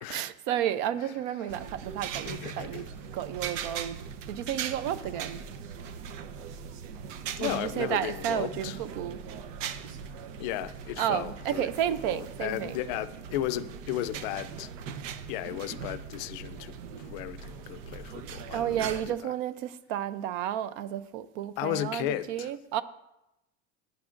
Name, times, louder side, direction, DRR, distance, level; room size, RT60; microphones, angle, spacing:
voice 1, 0.1-2.9 3.1-4.0 4.3-5.4 7.4-9.2 11.0-12.8 18.5-22.8, right 11 dB, 45° right, 0.5 m, -32 dB
sound 1, 1.5-19.1, right 7 dB, 90° right, 0.9 m, -40 dB
voice 2, 2.3-2.9 7.4-8.8 10.4-14.7 15.3-19.3 21.6-22.5, left 13 dB, 45° left, 0.5 m, -35 dB
17.5 x 9.7 x 2.5 m
cardioid pair, 180°, 37 cm